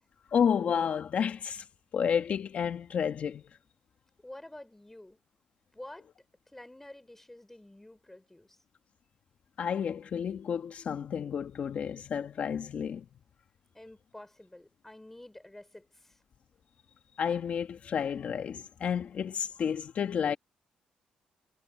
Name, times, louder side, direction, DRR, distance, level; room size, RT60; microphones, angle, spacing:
voice 1, 0.3-1.6 1.9-3.4 9.6-13.0 17.2-20.4, left 7 dB, 60° left, 1.4 m, -31 dB
voice 2, 4.2-5.2 5.7-6.1 6.5-8.6 13.7-16.2, left 1 dB, 10° left, 3.9 m, -49 dB
cardioid pair, 75°, 3 cm